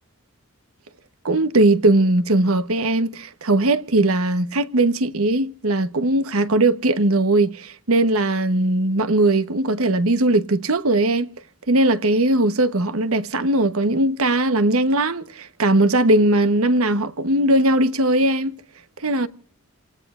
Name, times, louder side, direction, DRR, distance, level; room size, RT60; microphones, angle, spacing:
voice 1, 1.2-11.3 11.7-18.5 19.0-19.3, right 2 dB, 80° right, 1.1 m, -19 dB
28.5 x 18.5 x 2.5 m
head